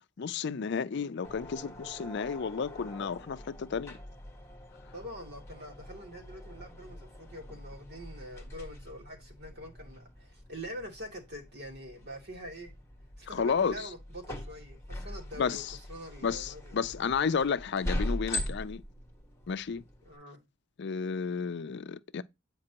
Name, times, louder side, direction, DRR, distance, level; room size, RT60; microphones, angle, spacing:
voice 1, 0.2-4.0 13.3-13.9 15.4-15.8 16.2-18.8 19.5-19.8 20.8-22.2, left 6 dB, 60° left, 0.5 m, -32 dB
sound 1, 1.2-20.1, left 1 dB, 15° left, 1.3 m, -42 dB
voice 2, 4.9-12.7 13.2-17.2 20.1-20.4, equal, 55° right, 2.6 m, -45 dB
8.7 x 5.2 x 2.9 m
head